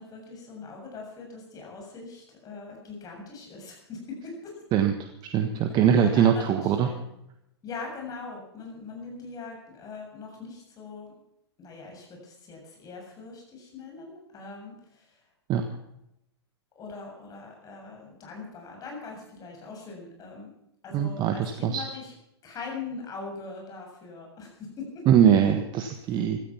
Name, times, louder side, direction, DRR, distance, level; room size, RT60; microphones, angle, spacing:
voice 1, 0.0-4.5 5.5-5.6 6.0-7.1 7.6-11.1 11.6-15.1 16.8-20.5 20.8-22.1 22.4-25.0 26.1-26.2, left 4 dB, 25° left, 0 dB, 7.4 m, -41 dB
voice 2, 5.3-6.9 15.5-15.6 20.9-21.8 25.1-26.4, right 8 dB, 30° right, 6 dB, 1.5 m, -22 dB
16.5 x 13.0 x 5.8 m, 0.81 s
hypercardioid pair, 115°, 14 cm